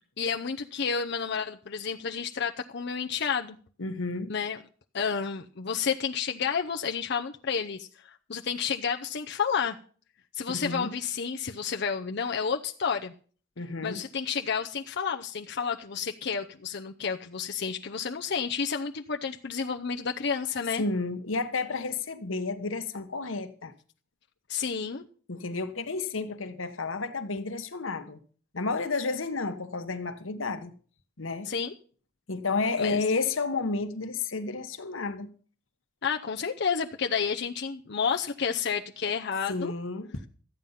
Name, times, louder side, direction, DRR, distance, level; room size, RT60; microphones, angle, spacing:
voice 1, 0.2-3.6 4.3-4.6 4.9-9.8 10.4-13.1 13.8-20.8 24.5-25.0 31.5-31.7 32.8-33.0 36.0-39.7, left 6 dB, 60° left, 0.7 m, -30 dB
voice 2, 3.8-4.3 10.5-10.9 13.6-14.0 20.8-23.7 25.3-28.2 28.5-30.7 31.2-31.5 32.3-35.3 39.5-40.1, left 3 dB, 90° left, 1.2 m, -31 dB
14.0 x 9.2 x 5.6 m
head